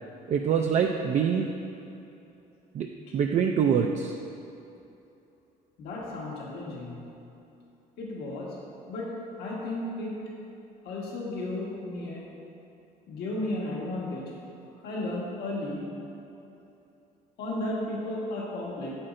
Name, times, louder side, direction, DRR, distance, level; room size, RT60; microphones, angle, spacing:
voice 1, 0.3-1.5 2.7-2.9 3.1-4.2, right 7 dB, 45° right, 3 dB, 0.4 m, -24 dB
voice 2, 5.8-7.0 8.0-8.6 8.9-9.1 9.4-10.2 10.8-12.2 13.1-14.3 14.8-15.9 17.4-19.0, left 1 dB, 75° left, -5 dB, 1.6 m, -34 dB
8.6 x 7.3 x 2.6 m, 2.8 s
cardioid pair, 110°, 17 cm